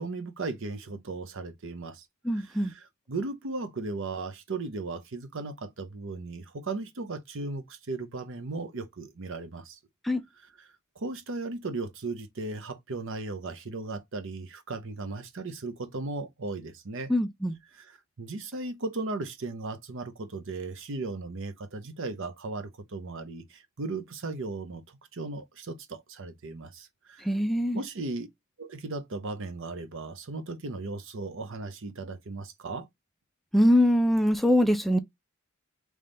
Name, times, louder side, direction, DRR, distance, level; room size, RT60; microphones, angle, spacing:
voice 1, 0.0-2.0 2.3-9.8 10.6-17.1 17.7-27.3 27.7-28.3 28.6-32.9, right 3 dB, 65° right, 0.8 m, -36 dB
voice 2, 2.2-2.7 10.0-10.2 17.1-17.6 27.2-27.8 33.5-35.0, equal, ahead, 0.4 m, -23 dB
3.5 x 3.2 x 3.8 m
head